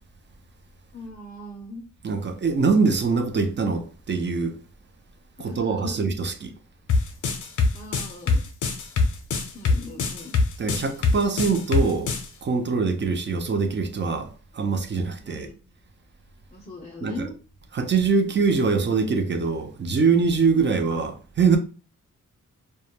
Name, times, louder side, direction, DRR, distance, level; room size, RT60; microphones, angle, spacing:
voice 1, 0.9-1.8 5.4-6.0 7.7-8.4 9.5-10.3 15.2-15.6 16.5-17.4 20.5-20.8, left 2 dB, 20° left, 0.5 m, -39 dB
voice 2, 2.0-4.6 5.4-6.5 10.6-12.1 12.4-15.5 17.0-17.3 17.7-21.6, right 5 dB, 35° right, 0.5 m, -23 dB
sound 1, 6.9-12.3, left 4 dB, 70° left, 0.6 m, -23 dB
2.2 x 2.1 x 2.9 m
cardioid pair, 65°, 32 cm